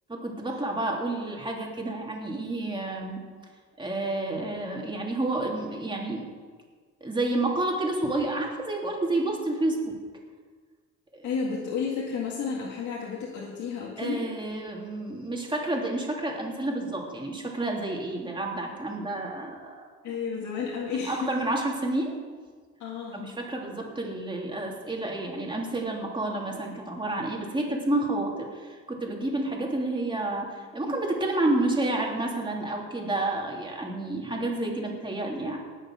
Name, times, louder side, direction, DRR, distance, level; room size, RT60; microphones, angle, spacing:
voice 1, 0.1-3.2 3.8-6.3 7.0-9.9 11.1-11.3 14.0-20.2 21.0-22.2 23.1-35.6, right 2 dB, 15° right, -1 dB, 3.1 m, -30 dB
voice 2, 11.2-14.2 20.0-21.4 22.8-23.4, left 5 dB, 70° left, -3 dB, 2.0 m, -32 dB
19.0 x 6.6 x 6.4 m, 1.5 s
cardioid pair, 90°, 30 cm